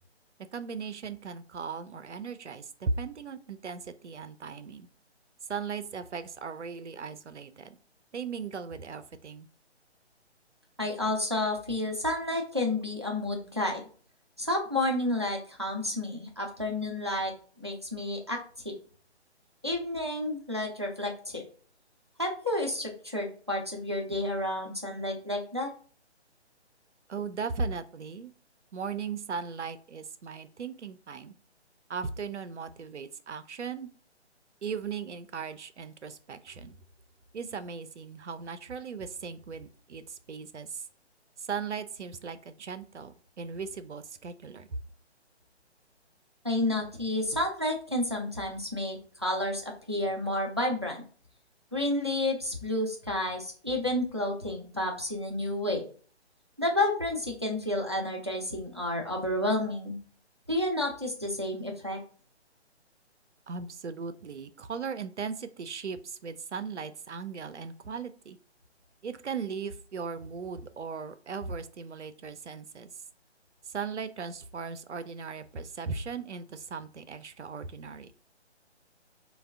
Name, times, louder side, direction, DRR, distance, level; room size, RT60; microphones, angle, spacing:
voice 1, 0.5-4.9 5.5-7.8 8.1-9.5 27.1-28.3 28.7-31.3 31.9-33.9 34.6-36.7 37.3-40.8 41.4-44.7 63.5-68.4 69.0-72.9 73.7-78.1, right 5 dB, 80° right, 11 dB, 0.5 m, -37 dB
voice 2, 10.8-13.8 14.4-18.4 18.6-18.7 19.6-21.4 22.2-25.7 46.4-51.0 51.7-55.8 56.6-60.0 60.5-62.0, left 1 dB, 25° right, 1 dB, 0.4 m, -30 dB
3.3 x 2.2 x 3.3 m, 0.43 s
figure-of-eight pair, 145°, 35 cm